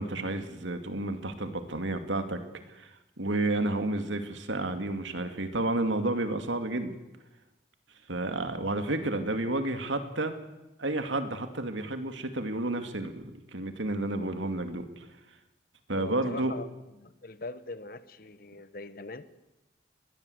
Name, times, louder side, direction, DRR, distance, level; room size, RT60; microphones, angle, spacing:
voice 1, 0.0-2.4 2.7-2.9 3.2-6.9 8.1-10.3 10.8-14.9 15.9-16.5, right 2 dB, 90° right, 8 dB, 2.5 m, -31 dB
voice 2, 16.0-19.2, left 2 dB, 50° left, 13 dB, 1.3 m, -42 dB
22.5 x 20.0 x 8.1 m, 1.0 s
head